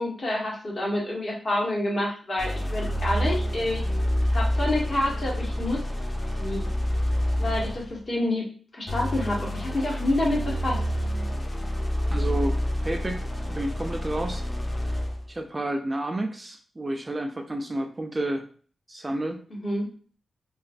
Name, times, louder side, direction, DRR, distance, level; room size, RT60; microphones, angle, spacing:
voice 1, 0.0-3.8 4.3-5.8 6.4-6.6 7.4-8.5 8.7-10.8 19.6-19.9, left 1 dB, 45° left, -2 dB, 1.0 m, -28 dB
sound 1, 2.4-8.0 8.9-15.3, equal, 25° left, 0.6 m, -28 dB
voice 2, 12.1-14.4 15.3-18.4 18.9-19.4, right 1 dB, 25° right, 4 dB, 0.3 m, -30 dB
3.1 x 2.3 x 2.4 m, 0.43 s
wide cardioid pair, 95°, 0 cm